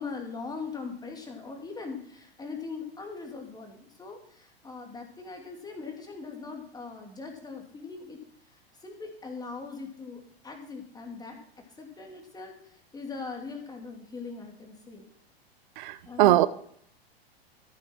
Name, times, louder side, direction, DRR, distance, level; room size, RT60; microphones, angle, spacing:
voice 1, 0.0-8.2 8.8-11.4 11.8-15.1 16.0-16.4, left 4 dB, 10° left, 3 dB, 2.7 m, -40 dB
voice 2, 15.8-16.5, right 15 dB, 55° right, 17 dB, 0.6 m, -21 dB
14.0 x 8.6 x 4.6 m, 0.66 s
figure-of-eight pair, 100°, 31 cm